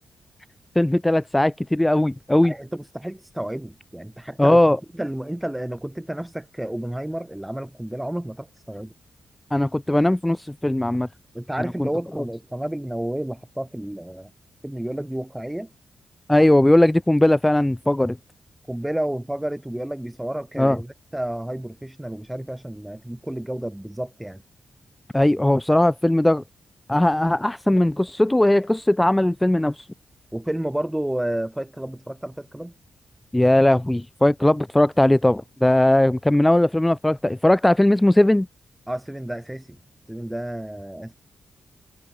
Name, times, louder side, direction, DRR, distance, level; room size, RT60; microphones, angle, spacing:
voice 1, 0.8-2.5 4.4-4.8 9.5-11.1 11.8-11.9 16.3-18.2 20.6-20.8 25.1-26.4 26.9-29.9 33.3-38.5, left 1 dB, 15° left, 0.5 m, -18 dB
voice 2, 2.4-4.6 4.9-8.9 11.3-14.3 14.6-15.7 18.7-24.4 30.3-32.7 38.9-39.8 40.1-41.1, right 1 dB, 10° right, 4.8 m, -31 dB
supercardioid pair, 55°, 0 cm